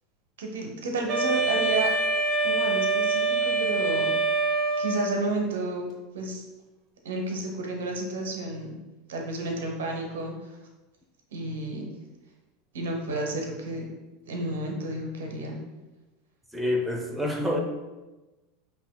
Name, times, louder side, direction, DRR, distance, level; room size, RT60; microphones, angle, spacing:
voice 1, 0.4-1.9 2.4-4.2 4.8-5.9 6.1-6.4 7.0-8.8 9.1-10.5 11.3-11.9 12.7-13.9 14.3-15.6, right 2 dB, 75° right, 2 dB, 0.8 m, -31 dB
Wind instrument woodwind instrument, 1.1-5.3, right 3 dB, 45° right, 0.9 m, -25 dB
voice 2, 16.5-17.6, left 1 dB, 5° right, 2 dB, 0.7 m, -27 dB
8.2 x 2.8 x 2.2 m, 1.1 s
hypercardioid pair, 85°, 0 cm